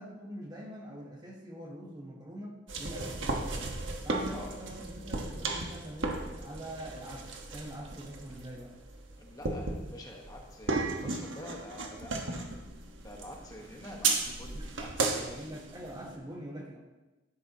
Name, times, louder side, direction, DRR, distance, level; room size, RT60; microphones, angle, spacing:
voice 1, 0.0-3.8 4.0-8.8 14.5-14.7 15.2-16.8, right 1 dB, 20° right, 0 dB, 1.3 m, -44 dB
sound 1, 2.7-16.2, right 3 dB, 80° right, 1.3 m, -35 dB
voice 2, 9.2-12.7 13.0-15.4, left 1 dB, 20° left, 0 dB, 1.2 m, -47 dB
12.5 x 10.5 x 2.9 m, 1.1 s
head